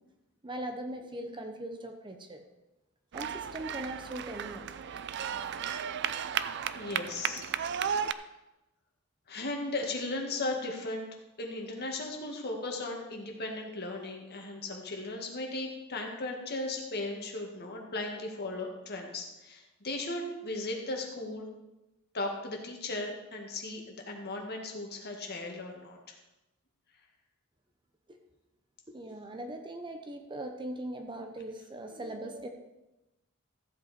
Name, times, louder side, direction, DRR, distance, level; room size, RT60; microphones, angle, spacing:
voice 1, 0.4-2.4 3.1-5.0 28.1-28.2 28.9-32.5, right 1 dB, 20° right, 5 dB, 0.8 m, -40 dB
sound 1, 3.1-8.1, right 8 dB, 55° right, 0.4 m, -34 dB
voice 2, 6.7-7.4 9.3-11.1 11.4-21.5 22.1-26.1, left 2 dB, 50° left, 1 dB, 1.9 m, -36 dB
14.5 x 7.7 x 4.3 m, 0.97 s
head